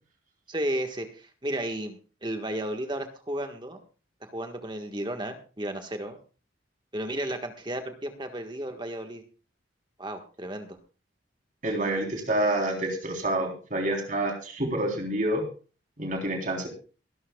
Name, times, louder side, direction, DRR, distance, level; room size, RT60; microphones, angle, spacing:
voice 1, 0.5-3.8 4.2-6.2 6.9-9.2 10.0-10.8, right 1 dB, 25° right, 5 dB, 1.5 m, -33 dB
voice 2, 11.6-15.4 16.0-16.7, right 1 dB, 40° right, 2 dB, 3.6 m, -28 dB
23.5 x 11.5 x 2.3 m, 0.36 s
head